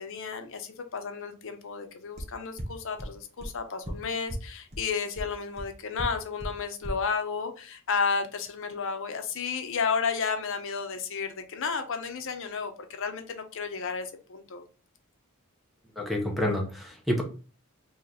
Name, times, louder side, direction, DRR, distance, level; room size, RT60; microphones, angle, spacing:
voice 1, 0.0-14.6, left 5 dB, 60° left, 7 dB, 0.7 m, -32 dB
sound 1, 2.2-2.3 2.6-2.7 3.0-3.1 3.4-3.5 3.8-3.9 4.3-4.4 4.7-4.8 5.2-5.3 5.6-5.7 6.0-6.1 6.4-6.5 6.8-6.9, equal, 30° right, 1.0 m, -36 dB
voice 2, 16.0-17.2, left 1 dB, ahead, 1 dB, 0.9 m, -28 dB
3.1 x 3.0 x 3.9 m, 0.35 s
head